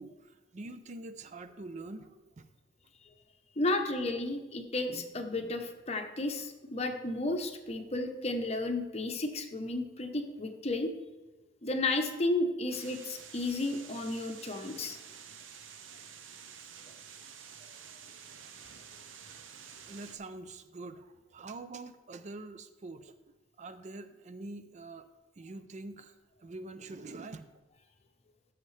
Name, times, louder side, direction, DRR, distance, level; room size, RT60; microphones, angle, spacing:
voice 1, 0.0-2.5 19.8-23.2 23.6-25.1 25.4-26.1 26.4-27.4, right 2 dB, 40° right, 11 dB, 0.4 m, -45 dB
voice 2, 3.6-10.9 11.6-15.0, left 2 dB, 35° left, 5 dB, 0.9 m, -33 dB
sound 1, 12.7-20.2, right 7 dB, 85° right, 0.8 m, -50 dB
14.0 x 6.5 x 3.3 m, 1.1 s
head